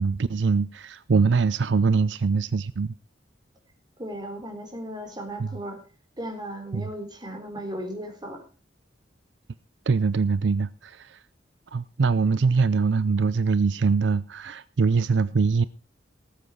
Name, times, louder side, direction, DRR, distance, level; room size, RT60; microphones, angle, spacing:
voice 1, 0.0-2.9 5.4-5.5 6.7-6.9 9.9-11.1 11.7-15.6, right 4 dB, 75° right, 0.5 m, -23 dB
voice 2, 4.0-5.8 6.2-8.4, right 1 dB, 25° right, 3.6 m, -36 dB
18.5 x 7.8 x 4.8 m
head